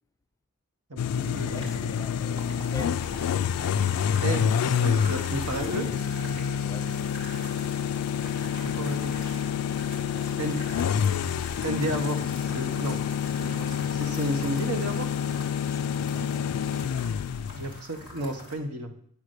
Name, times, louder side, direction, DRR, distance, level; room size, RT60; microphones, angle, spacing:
voice 1, 0.9-1.9 4.2-5.9 8.6-9.4 10.4-10.6 11.6-13.0 13.4-15.1 17.6-18.9, right 1 dB, 85° right, 1.3 m, -32 dB
sound 1, 1.0-17.8, left 8 dB, 90° left, 0.3 m, -28 dB
sound 2, 1.1-18.5, left 1 dB, 20° right, 2.1 m, -45 dB
voice 2, 1.5-3.1 5.1-5.3 6.6-6.9 10.1-10.7 15.7-16.5, left 1 dB, 15° left, 0.5 m, -44 dB
8.4 x 6.0 x 6.6 m
head